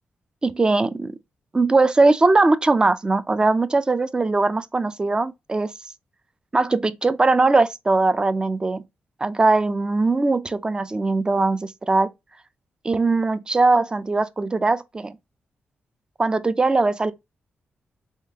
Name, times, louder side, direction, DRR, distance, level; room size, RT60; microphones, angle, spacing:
voice 1, 0.4-1.2 1.5-5.7 6.5-8.8 9.2-12.1 12.8-15.2 16.2-17.1, right 3 dB, 20° right, 0.4 m, -20 dB
3.7 x 3.5 x 2.7 m
cardioid pair, 115°, 4 cm